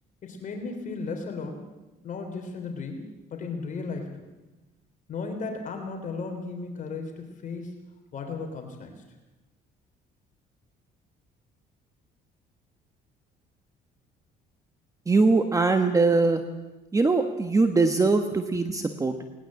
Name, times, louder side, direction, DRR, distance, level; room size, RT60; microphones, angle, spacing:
voice 1, 0.2-1.7 2.0-4.2 5.1-7.8 8.1-9.0, left 4 dB, 50° left, 3 dB, 3.6 m, -35 dB
voice 2, 15.1-16.4 16.9-19.2, right 3 dB, 20° right, 7 dB, 1.3 m, -22 dB
20.0 x 19.5 x 7.6 m, 1.1 s
cardioid pair, 110°, 17 cm